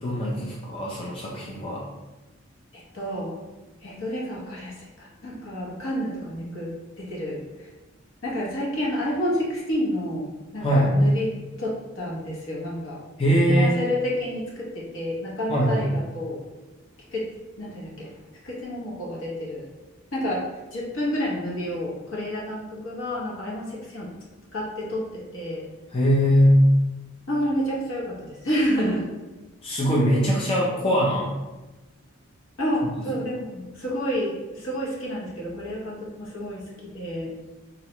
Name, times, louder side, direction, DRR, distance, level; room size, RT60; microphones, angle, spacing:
voice 1, 0.0-1.8 10.6-11.0 13.2-13.8 15.5-15.9 25.9-26.7 29.6-31.3, equal, 25° left, -4 dB, 0.4 m, -21 dB
voice 2, 2.7-3.3 3.8-7.7 8.2-10.3 10.5-11.3 11.6-13.0 13.5-16.4 17.1-17.3 17.6-18.1 18.4-19.7 20.1-24.1 24.5-25.7 27.3-29.0 32.6-37.3, equal, 65° left, -4 dB, 0.9 m, -29 dB
3.8 x 2.2 x 2.9 m, 1.1 s
head